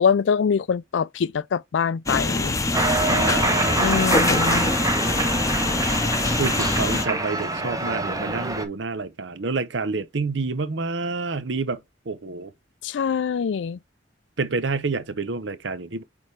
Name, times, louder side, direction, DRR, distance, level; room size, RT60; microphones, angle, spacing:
voice 1, 0.0-2.6 3.8-4.7 12.8-13.8, left 6 dB, 75° left, 0.4 m, -24 dB
sound 1, 2.1-7.1, left 2 dB, 15° left, 0.7 m, -24 dB
Cheering, 2.7-8.7, right 2 dB, 20° right, 1.0 m, -25 dB
voice 2, 3.0-3.9 4.3-4.6 5.6-5.8 6.4-11.8 12.1-12.5 14.4-16.0, right 4 dB, 75° right, 0.8 m, -28 dB
8.6 x 3.6 x 3.2 m
head